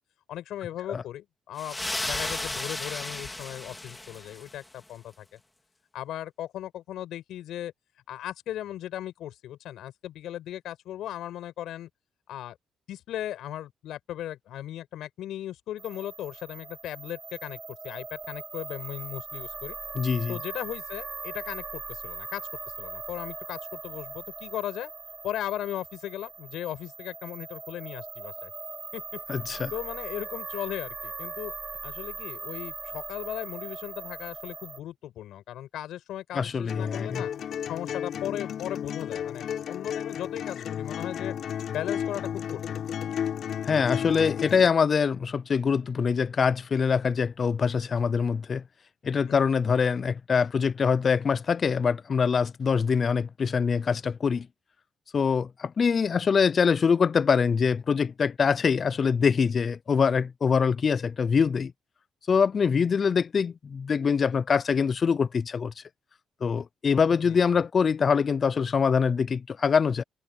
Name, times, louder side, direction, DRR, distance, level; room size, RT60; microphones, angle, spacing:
voice 1, 0.3-1.8 2.1-5.3 5.9-7.7 8.1-11.9 12.3-12.6 12.9-17.6 17.8-19.8 20.3-22.5 22.8-24.9 25.2-28.5 28.9-29.2 29.7-31.5 31.8-37.3 37.7-41.3 41.7-42.8 49.3-49.5 67.2-67.6, left 12 dB, 80° left, 5.3 m, -37 dB
sound 1, 1.6-4.6, left 2 dB, 15° left, 3.3 m, -34 dB
sound 2, 15.8-34.8, right 4 dB, 30° right, 2.9 m, -40 dB
voice 2, 19.9-20.4 29.3-29.7 36.3-37.2 43.6-48.6 49.0-54.5 55.1-61.7 62.3-65.7 66.4-70.0, left 6 dB, 45° left, 0.5 m, -24 dB
sound 3, 36.7-44.7, left 9 dB, 65° left, 3.9 m, -33 dB
cardioid pair, 90°, 0 cm